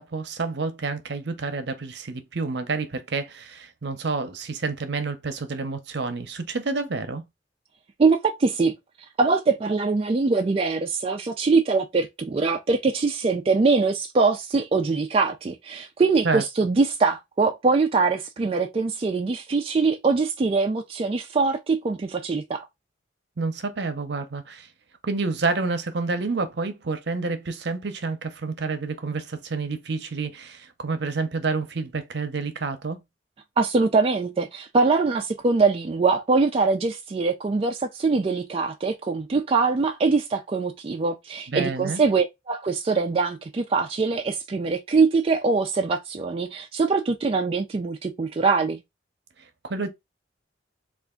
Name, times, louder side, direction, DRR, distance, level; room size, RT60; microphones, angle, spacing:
voice 1, 0.0-7.2 16.2-16.4 23.4-24.7 25.0-33.0 41.5-42.0 49.6-49.9, right 4 dB, 60° right, 0.7 m, -29 dB
voice 2, 8.0-8.7 9.2-22.7 33.6-48.8, right 4 dB, 30° right, 0.3 m, -23 dB
3.4 x 2.4 x 3.6 m
head